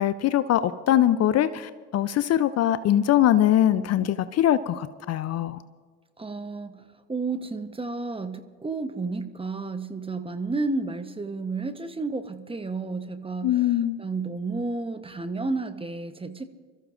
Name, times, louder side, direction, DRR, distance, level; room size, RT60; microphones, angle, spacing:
voice 1, 0.0-5.6 13.4-14.0, left 11 dB, 45° left, 14 dB, 0.5 m, -22 dB
voice 2, 6.2-16.4, right 3 dB, 15° right, 10 dB, 0.9 m, -32 dB
25.5 x 14.0 x 2.5 m, 1.5 s
hypercardioid pair, 70°, 35 cm